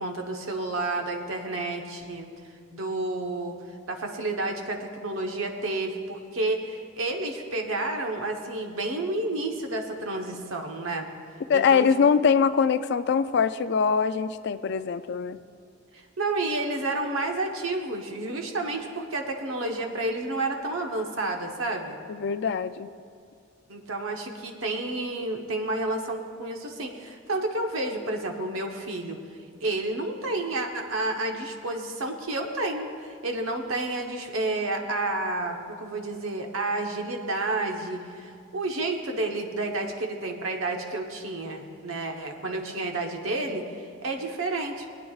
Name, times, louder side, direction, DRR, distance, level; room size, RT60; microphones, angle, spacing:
voice 1, 0.0-2.3 2.7-3.6 3.9-11.1 11.5-11.9 15.9-22.0 23.7-29.2 29.6-44.9, right 2 dB, 90° right, 3 dB, 1.1 m, -30 dB
voice 2, 11.5-15.4 22.2-22.9, left 6 dB, 55° left, 12 dB, 0.3 m, -23 dB
22.5 x 9.1 x 2.4 m, 2.3 s
head